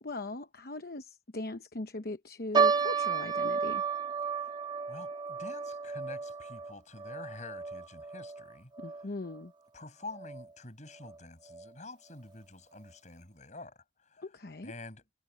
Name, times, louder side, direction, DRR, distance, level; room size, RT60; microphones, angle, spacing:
voice 1, 0.0-3.8 8.8-9.5 14.2-14.7, left 2 dB, 60° left, 1.0 m, -40 dB
sound 1, 2.5-9.0 9.3-9.4 10.2-10.4 11.0-11.1 11.5-11.7, right 5 dB, 25° right, 1.6 m, -32 dB
voice 2, 4.9-8.7 9.7-14.2 14.6-15.0, left 2 dB, 45° left, 6.6 m, -47 dB
head